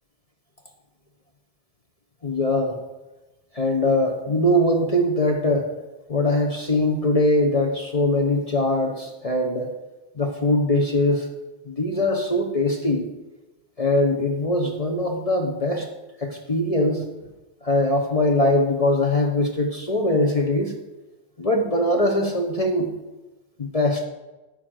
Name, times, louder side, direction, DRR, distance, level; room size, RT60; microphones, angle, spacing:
voice 1, 2.2-2.8 3.5-5.7 6.1-9.7 10.2-11.3 11.7-13.0 13.8-15.9 16.2-17.0 17.6-20.7 21.4-22.9 23.6-24.1, left 1 dB, 35° left, 2 dB, 1.0 m, -22 dB
9.9 x 5.9 x 7.7 m, 1.1 s
omnidirectional pair, 1.1 m